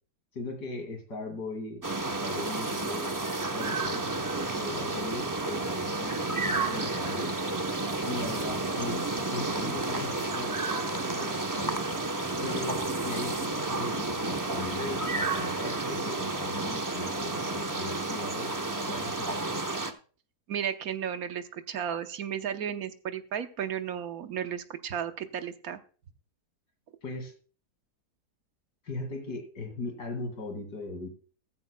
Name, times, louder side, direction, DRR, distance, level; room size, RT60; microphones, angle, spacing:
voice 1, 0.3-3.2 3.5-7.3 8.0-11.8 12.4-18.6 18.8-19.6 27.0-27.3 28.8-31.1, left 2 dB, 80° left, 5 dB, 2.8 m, -39 dB
sound 1, 1.8-19.9, right 2 dB, 30° right, 0.3 m, -31 dB
voice 2, 20.5-25.8, right 8 dB, 65° right, 9 dB, 1.3 m, -34 dB
15.0 x 14.5 x 2.2 m, 0.39 s
omnidirectional pair, 1.8 m